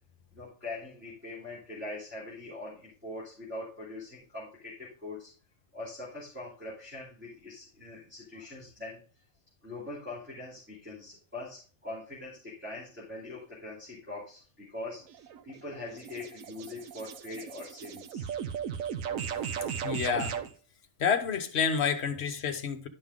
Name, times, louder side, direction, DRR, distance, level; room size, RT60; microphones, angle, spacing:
voice 1, 0.3-5.3 5.7-9.0 9.6-15.0 15.4-18.3, left 2 dB, 10° right, 2.7 m, -42 dB
sound 1, 15.1-20.5, right 8 dB, 75° right, 1.1 m, -36 dB
voice 2, 19.8-20.4 21.0-22.9, left 6 dB, 55° left, 1.1 m, -29 dB
11.5 x 5.5 x 3.6 m
omnidirectional pair, 1.4 m